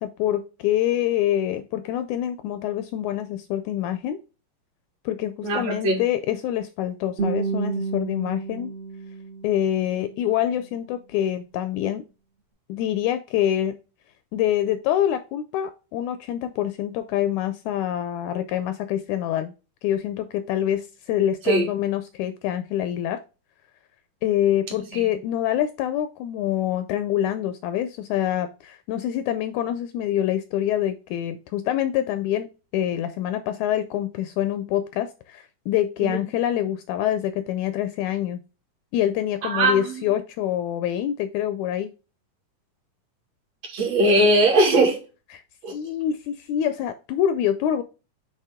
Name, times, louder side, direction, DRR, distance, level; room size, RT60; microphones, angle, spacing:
voice 1, 0.0-4.2 5.0-8.7 9.4-12.0 12.7-13.8 14.3-19.5 19.8-23.2 24.2-32.5 32.7-38.4 38.9-41.9 45.3-45.4 45.7-47.8, left 11 dB, 80° left, 10 dB, 1.8 m, -25 dB
voice 2, 5.4-6.0 21.4-21.7 24.9-25.1 36.0-36.3 39.4-40.1 43.7-45.0 45.6-45.8, right 1 dB, 55° right, -1 dB, 3.1 m, -20 dB
Guitar, 7.2-10.2, right 5 dB, 80° right, 0.5 m, -30 dB
8.3 x 3.5 x 3.6 m, 0.32 s
omnidirectional pair, 3.7 m